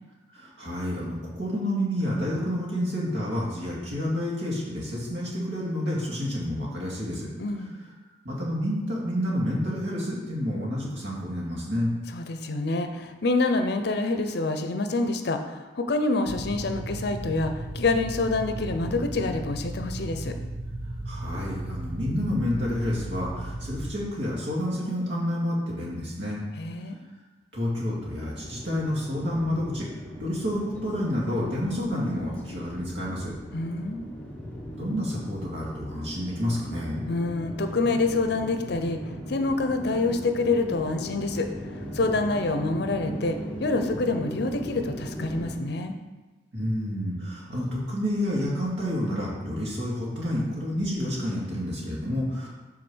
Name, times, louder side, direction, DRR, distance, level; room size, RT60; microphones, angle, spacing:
voice 1, 0.3-7.3 8.2-11.9 21.1-26.4 27.5-29.9 30.2-33.3 34.7-37.0 46.5-52.5, left 1 dB, 90° right, -6 dB, 2.3 m, -29 dB
voice 2, 7.4-7.8 12.1-20.3 26.6-27.0 33.5-34.1 37.1-39.0 39.3-41.5 41.9-45.9, left 3 dB, 60° left, 7 dB, 0.6 m, -27 dB
sound 1, 16.2-23.9, right 1 dB, 55° right, 1.0 m, -35 dB
sound 2, 28.0-45.6, equal, 10° left, 0.9 m, -38 dB
6.3 x 3.7 x 6.2 m, 1.2 s
head